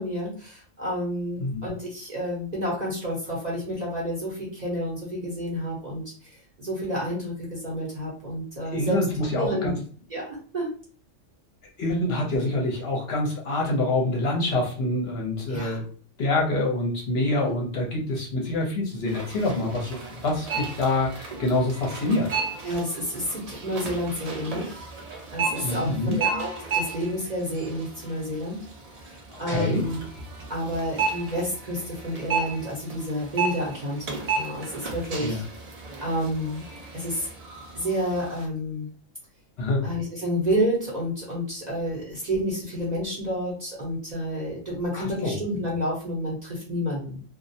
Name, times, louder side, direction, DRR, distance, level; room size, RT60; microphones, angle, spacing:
voice 1, 0.0-9.0 9.3-9.7 10.1-10.7 15.5-15.8 17.3-17.5 22.6-24.8 25.3-28.6 29.0-30.0 30.5-35.4 35.8-36.6 36.9-37.3 37.7-38.9 39.8-47.2, equal, 45° right, -5 dB, 0.7 m, -30 dB
voice 2, 1.4-1.7 8.7-9.8 11.8-15.8 16.2-22.3 25.6-26.2 29.3-29.9 35.2-35.4 39.6-39.9 44.9-45.4, left 2 dB, 60° left, -1 dB, 0.8 m, -26 dB
sound 1, 19.0-38.5, right 4 dB, 75° right, 0.3 m, -34 dB
2.3 x 2.0 x 2.6 m, 0.43 s
omnidirectional pair, 1.3 m